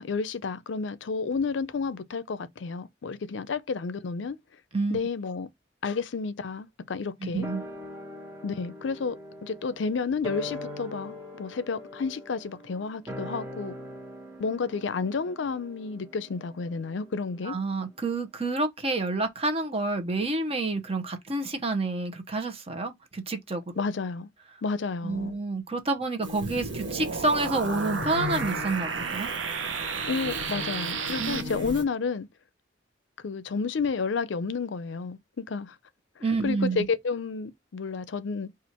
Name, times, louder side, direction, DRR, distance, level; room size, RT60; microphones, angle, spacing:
voice 1, 0.0-4.4 4.9-5.5 5.8-7.5 8.4-13.7 14.4-17.6 23.8-24.3 24.6-25.3 30.1-32.3 33.2-35.8 36.4-38.5, left 5 dB, 70° left, 0.5 m, -31 dB
voice 2, 7.2-7.6 17.4-23.6 25.0-29.3 31.2-31.7 36.2-36.9, right 3 dB, 30° right, 0.8 m, -29 dB
sound 1, 7.4-18.0 18.3-18.4, left 1 dB, 15° right, 0.9 m, -42 dB
sound 2, 26.2-31.8, left 3 dB, 65° right, 1.3 m, -38 dB
sound 3, 26.4-31.4, right 5 dB, 90° right, 0.7 m, -32 dB
4.3 x 2.4 x 4.3 m
head